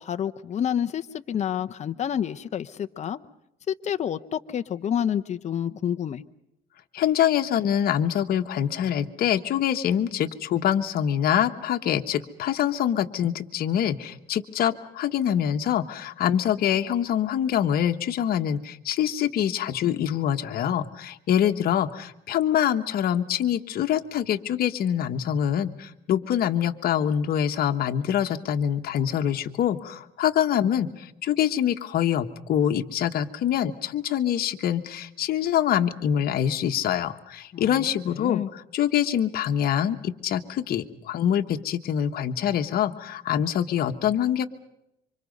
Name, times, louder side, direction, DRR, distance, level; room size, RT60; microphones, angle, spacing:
voice 1, 0.0-3.2 3.7-6.2 37.5-38.5, left 9 dB, 45° left, 9 dB, 0.9 m, -29 dB
voice 2, 6.9-44.5, left 10 dB, 60° left, 6 dB, 1.4 m, -25 dB
27.0 x 25.5 x 5.4 m, 0.82 s
cardioid pair, 110°, 17 cm